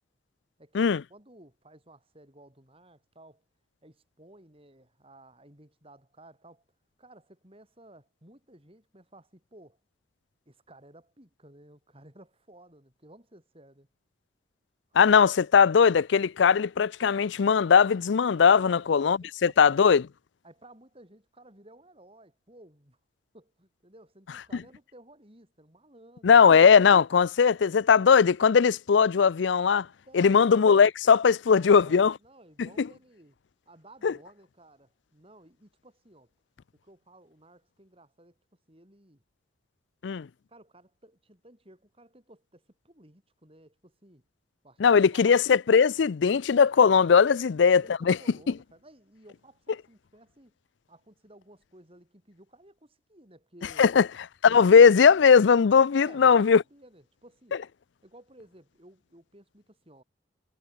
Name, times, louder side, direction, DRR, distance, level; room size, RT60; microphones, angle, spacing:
voice 1, 0.6-3.4 3.8-6.6 7.0-9.8 10.5-13.9 14.9-15.0 18.5-19.8 20.4-23.0 23.3-26.5 30.1-30.5 31.5-33.4 33.7-36.3 36.7-38.4 38.7-39.2 40.5-44.2 44.6-45.3 47.3-50.5 50.9-53.9 56.0-57.6 58.0-60.0, right 1 dB, 30° right, 6.3 m, -55 dB
voice 2, 15.0-20.1 26.2-29.9 30.1-32.1 32.8-32.9 34.0-34.1 40.0-40.3 44.8-48.2 53.8-54.1 54.4-56.6, left 6 dB, 75° left, 0.4 m, -19 dB
head